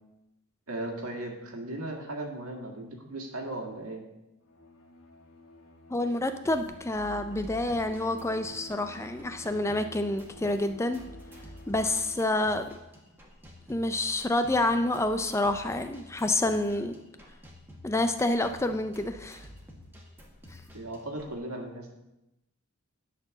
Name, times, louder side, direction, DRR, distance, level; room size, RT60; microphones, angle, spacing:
voice 1, 0.7-4.0 20.7-21.9, right 1 dB, 80° right, 2 dB, 1.9 m, -37 dB
Bowed string instrument, 4.4-12.9, left 2 dB, 75° left, 1.3 m, -51 dB
voice 2, 5.9-11.0 11.7-12.7 13.7-17.0 17.8-19.5, left 2 dB, 10° left, 8 dB, 0.4 m, -28 dB
sound 1, 6.4-21.4, equal, 10° right, 1.5 m, -50 dB
10.5 x 4.5 x 7.0 m, 0.93 s
head